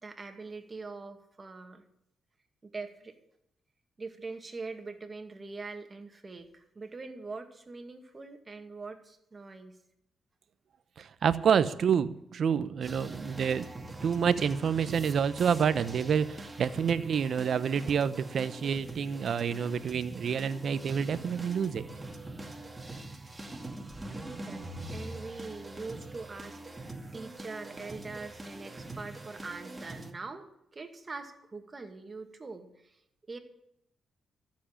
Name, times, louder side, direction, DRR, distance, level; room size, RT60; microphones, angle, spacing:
voice 1, 0.0-1.8 2.6-3.2 4.0-9.8 23.9-24.1 24.4-33.0 33.3-33.4, right 3 dB, 35° right, 5 dB, 2.2 m, -43 dB
voice 2, 11.0-13.7 14.0-21.8, right 7 dB, 65° right, 14 dB, 0.8 m, -28 dB
sound 1, 12.8-30.1, right 2 dB, 20° right, 2.3 m, -43 dB
14.0 x 7.4 x 8.8 m, 0.77 s
supercardioid pair, 60°, 0 cm